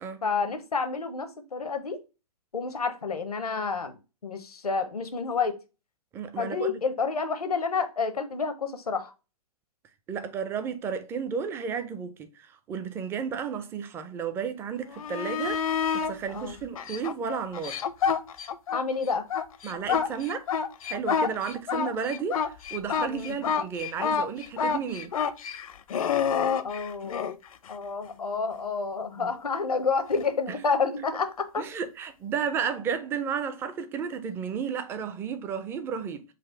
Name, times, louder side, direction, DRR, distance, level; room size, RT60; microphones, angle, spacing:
voice 1, 0.2-2.0 2.5-4.0 4.2-5.5 6.4-9.1 16.3-16.6 18.7-19.3 23.1-23.4 26.6-27.4 27.7-31.6, left 5 dB, 90° left, 0.9 m, -29 dB
voice 2, 6.1-6.7 10.1-15.6 15.9-17.8 19.6-20.5 20.9-25.1 29.2-29.3 30.5-30.6 31.6-36.2, right 6 dB, 10° right, 0.4 m, -33 dB
sound 1, 14.9-16.1 16.7-18.8 19.1-27.3 30.1-30.2, left 7 dB, 65° left, 0.6 m, -28 dB
4.0 x 2.4 x 4.5 m
hypercardioid pair, 130°, 19 cm